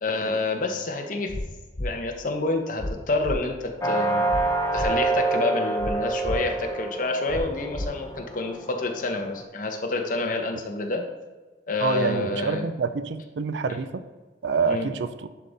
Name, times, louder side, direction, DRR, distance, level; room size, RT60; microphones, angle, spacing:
voice 1, 0.0-1.3 1.8-4.3 4.7-11.0 11.7-12.6 14.7-14.9, left 3 dB, 50° left, 3 dB, 0.9 m, -28 dB
sound 1, 1.3-1.4 1.7-1.9 2.8-2.9 3.2-3.4 4.3-4.4 4.7-4.9 5.8-5.9 6.2-6.4 7.3-7.4 7.7-7.9, left 1 dB, 75° left, 2.1 m, -30 dB
sound 2, 3.8-9.4, right 2 dB, 15° left, 0.7 m, -27 dB
voice 2, 11.8-14.0 14.4-15.3, right 4 dB, 80° right, 11 dB, 0.4 m, -27 dB
10.5 x 3.6 x 4.0 m, 1.3 s
head